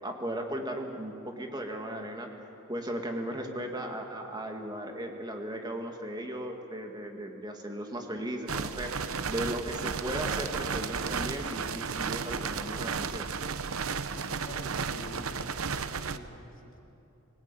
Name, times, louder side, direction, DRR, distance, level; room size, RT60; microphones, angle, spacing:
voice 1, 0.0-13.3, right 1 dB, 20° right, 3 dB, 2.2 m, -37 dB
sound 1, 8.5-16.2, right 5 dB, 70° right, 0.8 m, -33 dB
voice 2, 14.1-15.5 16.0-16.8, left 1 dB, 60° left, -1 dB, 3.5 m, -46 dB
24.5 x 17.0 x 9.1 m, 3.0 s
head